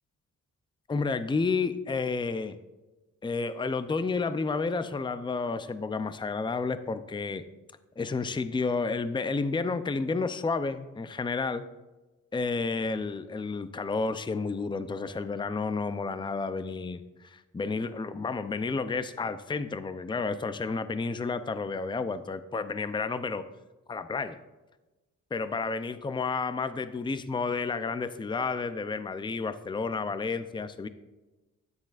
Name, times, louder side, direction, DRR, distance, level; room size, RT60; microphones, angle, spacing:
voice 1, 0.9-2.6 3.2-7.5 8.0-11.6 12.3-23.4 23.9-24.4 25.3-30.9, left 4 dB, 15° left, 12 dB, 0.5 m, -31 dB
13.0 x 9.7 x 2.5 m, 1.1 s
cardioid pair, 90°, 32 cm